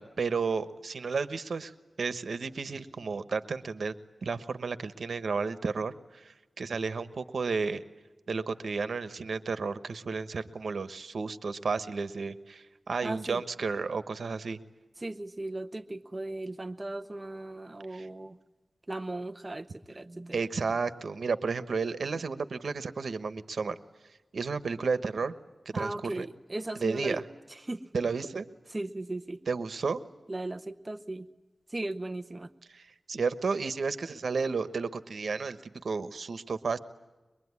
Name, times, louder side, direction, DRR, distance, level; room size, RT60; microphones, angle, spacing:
voice 1, 0.0-1.7 2.0-3.9 4.2-7.8 8.3-14.6 17.9-18.1 20.3-23.8 24.0-25.3 25.6-26.3 26.8-27.2 27.9-28.5 29.5-30.0 32.7-36.8, right 4 dB, 80° right, 12 dB, 1.2 m, -32 dB
voice 2, 13.0-13.4 15.0-18.4 18.9-20.4 25.7-27.2 27.7-27.9 28.7-29.4 30.3-31.3 31.7-32.5, right 2 dB, 25° right, 6 dB, 0.8 m, -37 dB
23.5 x 23.0 x 9.7 m, 1.1 s
wide cardioid pair, 110°, 0 cm